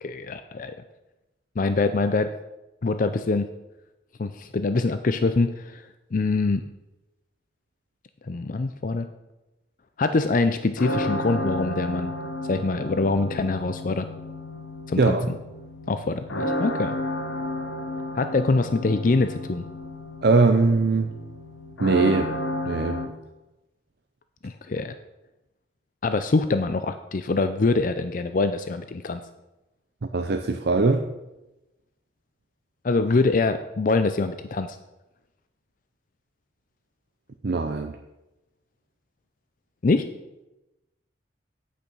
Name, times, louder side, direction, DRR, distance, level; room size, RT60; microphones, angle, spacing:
voice 1, 0.0-0.8 1.6-2.3 2.8-3.5 4.2-5.8 6.1-6.6 8.3-9.1 10.0-12.1 12.5-14.1 14.9-15.4 15.9-17.0 18.1-19.6 24.4-24.9 26.0-29.2 32.8-34.8 39.8-40.1, left 3 dB, 45° left, 9 dB, 0.5 m, -24 dB
sound 1, 10.8-23.1, left 1 dB, 80° left, 1.2 m, -32 dB
voice 2, 20.2-21.1 21.8-22.3 22.7-23.0 30.1-31.0 37.4-38.0, right 3 dB, 60° right, 6 dB, 0.6 m, -21 dB
8.8 x 8.5 x 5.3 m, 0.98 s
head